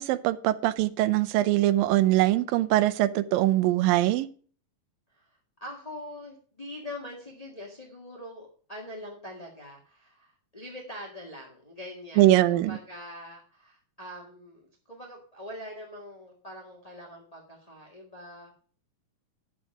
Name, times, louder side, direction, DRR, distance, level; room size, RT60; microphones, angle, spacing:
voice 1, 0.0-4.3 12.2-12.8, right 15 dB, 90° right, 15 dB, 2.4 m, -22 dB
voice 2, 5.1-18.6, left 1 dB, 20° left, -1 dB, 0.9 m, -43 dB
11.0 x 7.1 x 4.8 m, 0.43 s
omnidirectional pair, 4.0 m